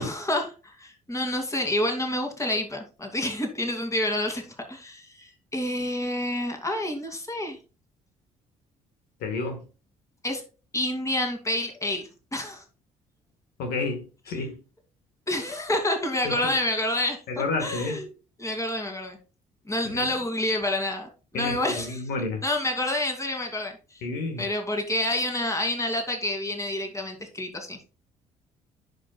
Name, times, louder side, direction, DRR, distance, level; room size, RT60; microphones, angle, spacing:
voice 1, 0.0-7.6 10.2-10.4 10.7-12.6 15.3-17.2 17.6-18.1 18.4-19.2 19.7-22.0 22.4-24.0 24.4-27.8, left 1 dB, 20° left, 2.5 m, -28 dB
voice 2, 9.2-9.6 13.6-14.6 16.2-16.5 17.3-18.0 19.9-20.1 21.3-22.4 24.0-24.4, left 3 dB, 75° left, 1.6 m, -30 dB
11.0 x 5.3 x 2.3 m
hypercardioid pair, 60°, 17 cm